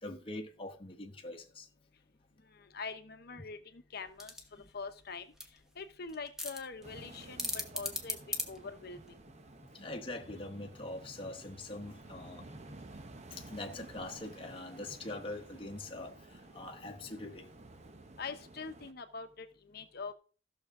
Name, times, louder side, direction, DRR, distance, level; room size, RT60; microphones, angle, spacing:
voice 1, 0.0-1.7 4.6-4.7 9.6-17.5, left 2 dB, 30° left, 1.0 m, -44 dB
voice 2, 2.5-4.3 4.7-5.2 5.8-8.2 8.5-9.1 18.2-20.1, left 4 dB, 55° left, 0.9 m, -44 dB
sound 1, 4.1-9.2, left 1 dB, 5° right, 1.2 m, -40 dB
sound 2, 6.8-18.9, right 2 dB, 35° right, 0.8 m, -53 dB
14.5 x 6.4 x 3.7 m
head